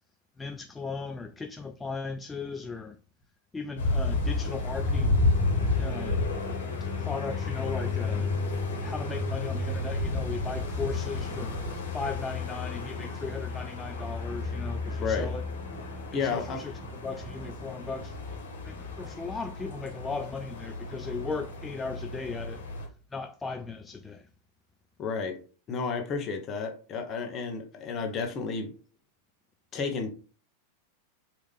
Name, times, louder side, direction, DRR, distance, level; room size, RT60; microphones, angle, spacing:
voice 1, 0.4-3.0 3.5-5.2 5.8-6.3 7.1-8.3 8.8-11.6 11.9-15.4 16.2-16.7 17.0-18.1 18.6-22.6 23.1-24.2, left 4 dB, 10° left, 0.3 m, -37 dB
sound 1, 3.8-22.9, left 3 dB, 60° left, 1.5 m, -31 dB
voice 2, 15.0-15.3 16.1-16.6 25.0-25.4 25.7-28.7 29.7-30.1, left 5 dB, 30° left, 1.1 m, -31 dB
4.8 x 2.9 x 3.6 m
figure-of-eight pair, 90°, 0 cm